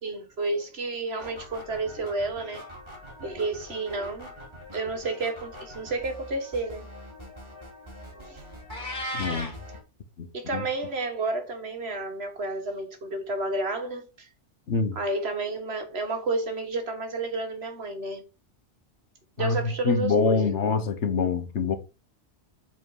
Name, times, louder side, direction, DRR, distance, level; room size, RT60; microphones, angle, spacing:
voice 1, 0.0-2.7 3.2-4.3 4.7-6.9 8.2-8.4 10.3-14.3 15.0-18.2 19.4-20.5, right 2 dB, 65° right, 1.8 m, -31 dB
sound 1, 1.2-9.8, equal, 25° right, 3.4 m, -44 dB
Meow, 8.7-9.6, equal, 40° left, 2.5 m, -33 dB
voice 2, 9.1-9.6 10.2-10.6 14.7-15.0 19.4-21.8, left 4 dB, 80° left, 1.4 m, -25 dB
7.5 x 4.4 x 4.7 m
omnidirectional pair, 1.2 m